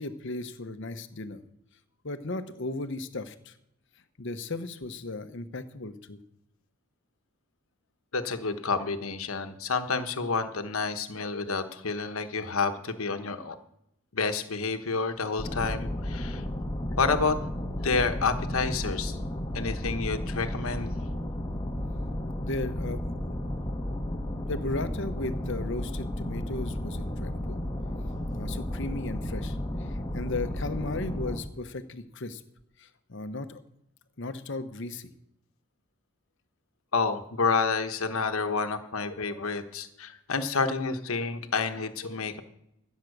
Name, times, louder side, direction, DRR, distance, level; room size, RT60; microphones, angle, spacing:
voice 1, 0.0-1.4 2.0-3.6 4.2-6.2 22.4-23.0 24.5-27.6 28.3-32.4 32.8-33.6 34.2-35.1, left 2 dB, 60° left, 10 dB, 0.9 m, -36 dB
voice 2, 8.1-13.6 14.1-16.4 17.0-17.4 17.8-19.2 19.5-20.9 36.9-42.4, left 4 dB, 75° left, 8 dB, 1.2 m, -29 dB
sound 1, 15.4-31.4, left 1 dB, 20° left, 1.4 m, -33 dB
15.5 x 7.3 x 6.6 m, 0.79 s
head